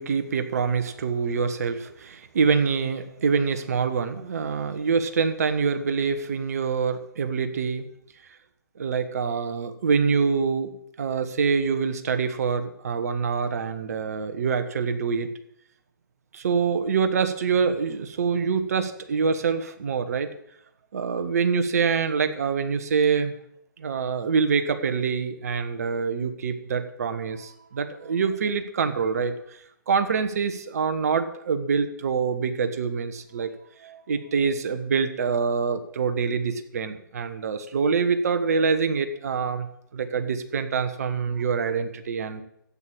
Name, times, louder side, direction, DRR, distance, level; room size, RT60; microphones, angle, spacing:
voice 1, 0.0-7.9 8.7-10.7 11.0-15.3 16.3-20.3 20.9-23.4 23.8-33.5 33.8-39.7 39.9-42.4, right 5 dB, 45° right, 9 dB, 1.3 m, -25 dB
12.5 x 8.6 x 7.3 m, 0.74 s
figure-of-eight pair, 130°, 11 cm